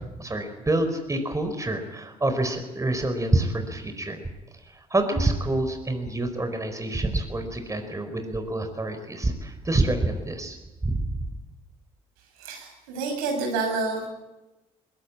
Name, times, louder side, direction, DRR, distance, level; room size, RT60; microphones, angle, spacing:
voice 1, 0.2-4.2 4.7-10.6 10.8-11.0, right 2 dB, 15° right, 7 dB, 4.5 m, -27 dB
voice 2, 12.4-14.0, right 4 dB, 80° right, 3 dB, 6.8 m, -28 dB
22.0 x 21.0 x 8.7 m, 1.0 s
hypercardioid pair, 55°, 18 cm